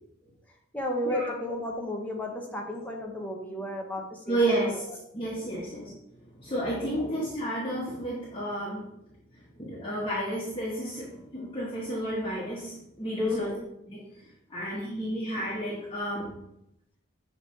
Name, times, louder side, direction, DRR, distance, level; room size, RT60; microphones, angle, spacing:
voice 1, 0.7-5.0 5.5-5.7 6.8-7.1 13.2-13.6, left 1 dB, 10° left, 0 dB, 0.8 m, -33 dB
voice 2, 4.3-4.8 5.1-5.9 6.3-8.9 9.6-13.5 13.9-14.0 14.5-16.3, right 1 dB, 25° left, -7 dB, 1.2 m, -31 dB
6.7 x 3.3 x 4.3 m, 0.81 s
head